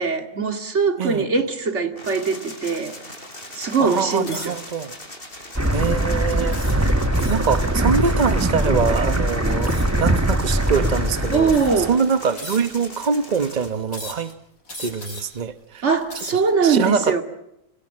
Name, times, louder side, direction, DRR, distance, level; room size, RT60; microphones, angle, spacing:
voice 1, 0.0-2.9 3.5-4.6 11.3-11.9 15.8-17.2, right 5 dB, 50° right, 2.6 m, -21 dB
sound 1, 2.0-13.7, left 1 dB, 35° left, 6.2 m, -39 dB
voice 2, 3.8-4.9 5.7-6.6 7.3-11.5 11.8-14.3 14.8-15.9 16.3-17.2, right 6 dB, 30° right, 1.1 m, -24 dB
sound 2, 4.3-4.7 5.3-5.6 6.5-7.5 9.6-10.0 10.9-11.0 11.4-11.9 12.4-13.0 13.9-14.3 14.7-15.4 15.9-16.5, left 1 dB, 65° left, 6.7 m, -38 dB
sound 3, 5.5-12.0, right 1 dB, 10° right, 1.4 m, -21 dB
28.5 x 27.0 x 7.7 m
omnidirectional pair, 1.6 m